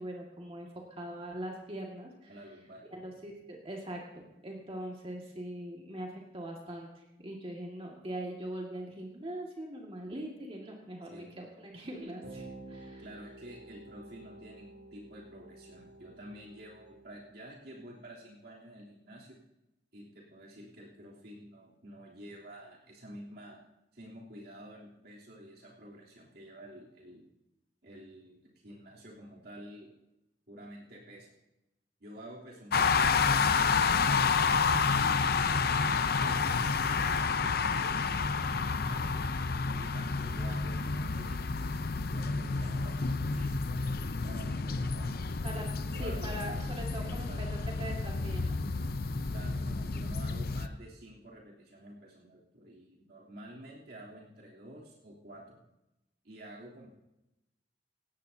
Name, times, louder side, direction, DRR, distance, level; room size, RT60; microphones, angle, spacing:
voice 1, 0.0-2.3 2.9-13.0 45.4-45.7 46.0-48.6, right 1 dB, 35° right, -1 dB, 2.0 m, -42 dB
voice 2, 2.3-2.8 11.1-11.4 13.0-19.4 19.9-23.6 23.9-27.2 27.8-29.9 30.5-31.3 32.0-34.4 34.9-38.5 38.8-39.3 39.8-41.8 42.0-43.7 44.2-45.1 45.9-46.4 47.0-47.7 49.3-55.6 56.2-56.9, right 1 dB, 65° right, -4 dB, 3.3 m, -50 dB
sound 1, 11.9-17.3, right 2 dB, 90° right, 2.7 m, -50 dB
sound 2, 32.7-50.7, left 4 dB, 60° left, 0.7 m, -30 dB
19.5 x 16.5 x 2.8 m, 0.92 s
head